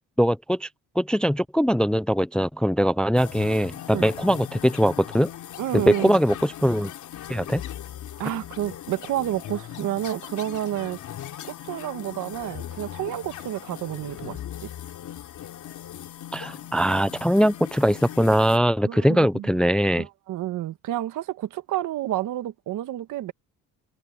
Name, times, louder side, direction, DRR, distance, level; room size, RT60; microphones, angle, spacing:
voice 1, 0.2-0.7 1.0-5.3 5.7-6.9 7.3-7.6 16.3-20.1, equal, 5° left, 0.5 m, -21 dB
sound 1, 3.1-18.6, left 11 dB, 60° left, 3.3 m, -39 dB
voice 2, 5.6-6.2 8.2-11.0 11.4-14.7 18.8-19.6 20.0-23.3, right 13 dB, 65° right, 1.7 m, -30 dB
cardioid pair, 105°, 33 cm